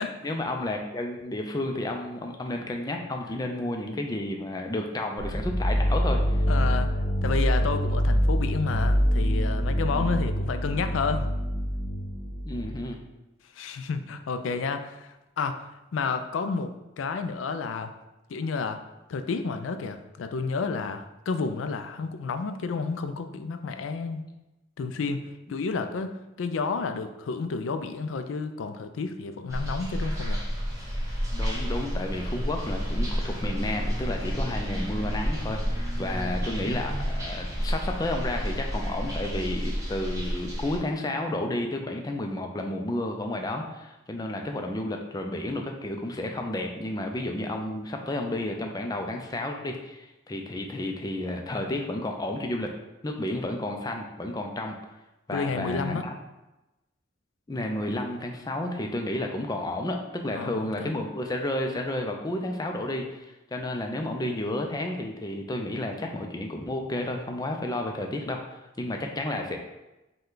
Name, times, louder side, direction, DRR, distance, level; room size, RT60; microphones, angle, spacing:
voice 1, 0.2-6.4 9.9-10.2 12.4-13.0 31.3-52.7 53.0-54.7 55.3-56.1 57.5-69.6, left 1 dB, 20° left, 3 dB, 0.4 m, -31 dB
sound 1, 5.2-12.9, equal, 45° left, 0.7 m, -25 dB
voice 2, 6.5-6.9 7.2-11.3 13.6-15.6 15.9-17.9 18.3-18.8 19.1-24.2 24.8-25.2 25.5-30.4 55.3-56.0 60.3-60.9, left 4 dB, 85° left, 8 dB, 0.4 m, -31 dB
sound 2, 29.5-40.8, equal, 15° right, 0.8 m, -30 dB
5.4 x 2.3 x 3.8 m, 1.0 s
head